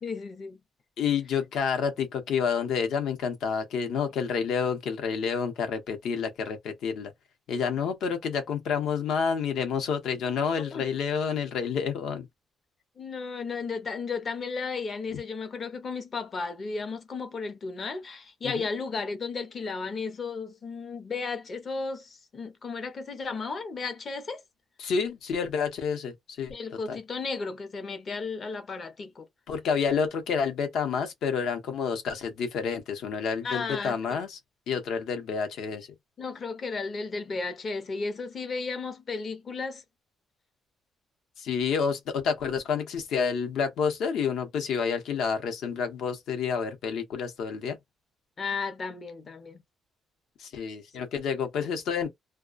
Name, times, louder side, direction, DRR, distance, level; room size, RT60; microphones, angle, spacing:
voice 1, 0.0-0.6 10.4-10.8 13.0-24.4 26.5-29.3 33.4-34.2 36.2-39.8 48.4-49.6, left 4 dB, 30° left, 0.6 m, -34 dB
voice 2, 1.0-7.1 7.5-12.3 15.1-15.2 18.4-18.7 24.8-27.0 29.5-34.4 34.7-35.9 41.4-47.8 50.4-52.1, left 6 dB, 65° left, 0.8 m, -29 dB
2.3 x 2.2 x 2.4 m
cardioid pair, 180°, 0 cm